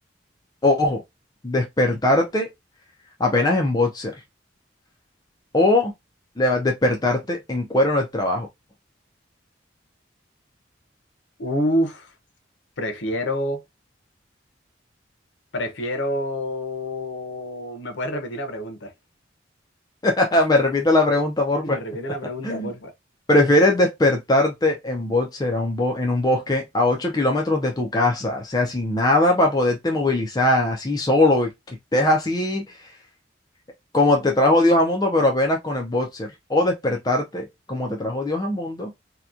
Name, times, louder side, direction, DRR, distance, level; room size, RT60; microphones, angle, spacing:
voice 1, 0.6-1.0 1.4-2.5 3.2-4.2 5.5-5.9 6.4-8.5 20.0-21.8 22.4-22.7 23.3-32.9 33.9-38.9, left 1 dB, 20° left, 0.4 m, -21 dB
voice 2, 11.4-12.1 12.8-13.6 15.5-18.9 21.6-22.9, equal, 75° left, 0.7 m, -27 dB
2.8 x 2.2 x 2.4 m
head